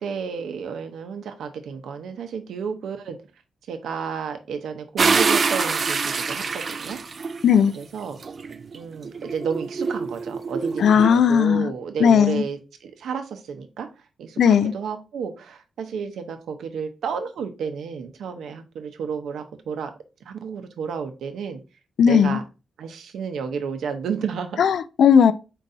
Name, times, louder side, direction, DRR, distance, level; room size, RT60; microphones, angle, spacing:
voice 1, 0.0-3.2 3.7-7.0 7.8-8.2 8.7-13.9 14.2-19.9 20.3-21.6 22.1-22.4 22.8-24.6, right 6 dB, 85° right, 0.7 m, -31 dB
sound 1, 5.0-7.6 8.2-11.1, right 4 dB, 35° right, 0.3 m, -25 dB
voice 2, 10.8-11.7 12.0-12.4 14.4-14.7 22.0-22.4 24.6-25.3, left 7 dB, 65° left, 0.3 m, -16 dB
4.5 x 4.0 x 2.6 m
wide cardioid pair, 155°, 0 cm